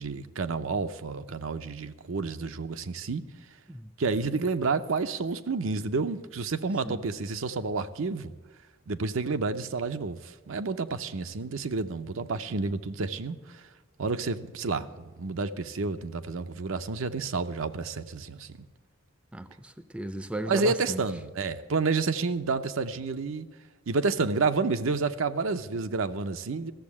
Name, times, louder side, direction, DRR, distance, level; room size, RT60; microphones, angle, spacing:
voice 1, 0.0-3.2 4.0-8.3 8.9-13.4 14.0-18.6 20.4-23.5 23.9-26.7, right 4 dB, 80° right, 0.7 m, -30 dB
voice 2, 19.3-21.0, right 1 dB, 5° right, 0.5 m, -36 dB
14.0 x 7.1 x 8.5 m
head